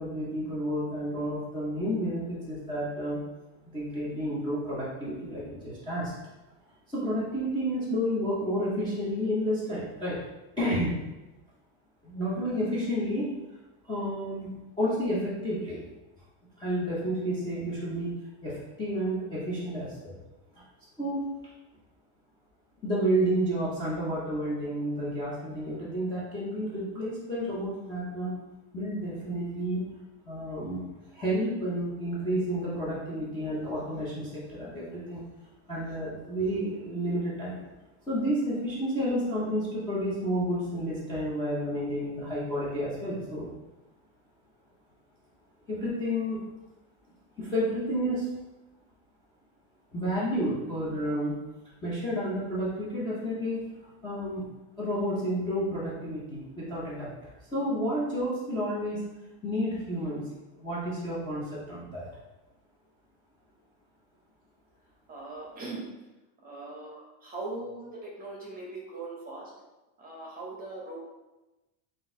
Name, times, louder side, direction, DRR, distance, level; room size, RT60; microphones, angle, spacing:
voice 1, 0.0-3.2 3.7-6.1 6.9-10.2 10.6-10.9 12.0-13.3 13.8-15.8 16.6-18.1 18.4-20.2 20.5-20.6 21.0-21.3 22.8-28.3 28.7-29.9 30.3-30.8 31.1-35.2 35.7-37.6 38.1-43.5 45.7-46.4 47.4-48.3 49.9-51.4 51.8-57.2 57.5-59.0 59.4-60.3 60.6-62.1, equal, 10° left, -10 dB, 0.5 m, -30 dB
voice 2, 65.1-65.9 66.4-69.5 70.0-71.1, right 2 dB, 20° right, -3 dB, 0.8 m, -40 dB
3.8 x 2.6 x 3.6 m, 1.1 s
cardioid pair, 160°, 44 cm